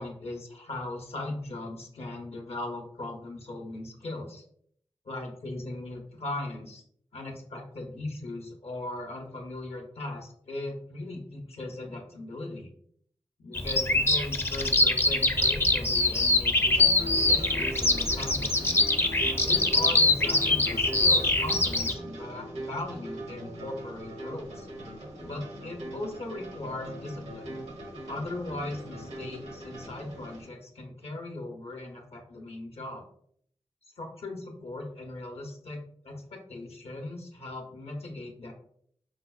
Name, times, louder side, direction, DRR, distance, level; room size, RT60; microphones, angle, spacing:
voice 1, 0.0-4.4 5.1-6.8 7.1-12.7 13.4-18.8 19.4-24.7 25.2-27.6 28.1-33.0 34.0-38.5, left 2 dB, 65° left, 1 dB, 0.6 m, -38 dB
Bird vocalization bird call bird song, 13.5-21.9, left 2 dB, 20° left, 0.4 m, -24 dB
sound 1, 16.6-30.5, right 1 dB, 85° right, 1.1 m, -40 dB
4.7 x 2.0 x 2.3 m, 0.65 s
cardioid pair, 50°, 11 cm